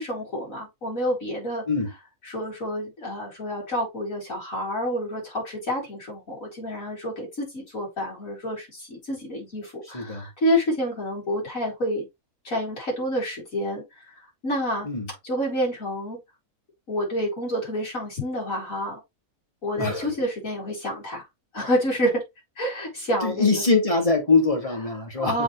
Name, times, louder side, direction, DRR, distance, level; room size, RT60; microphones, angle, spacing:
voice 1, 0.0-1.6 2.2-12.1 12.4-14.9 15.2-16.2 16.9-19.0 19.6-21.2 21.5-22.2 22.6-23.6 25.2-25.4, equal, 60° left, 4.4 m, -28 dB
voice 2, 9.9-10.2 14.8-15.1 19.8-20.1 23.2-25.4, left 3 dB, 20° left, 2.4 m, -23 dB
7.0 x 5.0 x 3.2 m
omnidirectional pair, 1.6 m